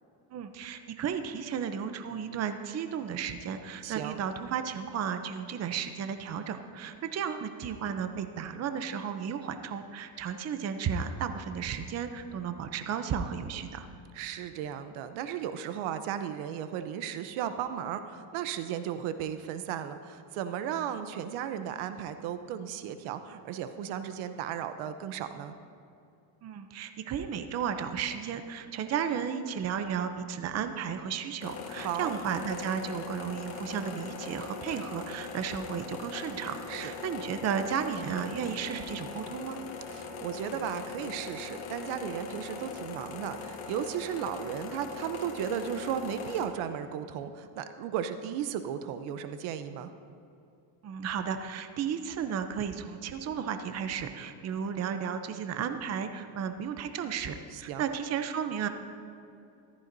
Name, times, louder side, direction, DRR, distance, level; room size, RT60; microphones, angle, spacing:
voice 1, 0.3-13.9 26.4-39.6 50.8-58.7, right 7 dB, 30° right, 8 dB, 0.6 m, -34 dB
voice 2, 3.8-4.2 14.1-25.6 31.8-32.1 36.7-36.9 39.9-49.9 57.5-57.8, right 9 dB, 75° right, 10 dB, 0.8 m, -35 dB
sound 1, 31.4-46.5, left 5 dB, 75° left, 1.6 m, -41 dB
14.5 x 14.0 x 2.7 m, 2.6 s
cardioid pair, 120°, 49 cm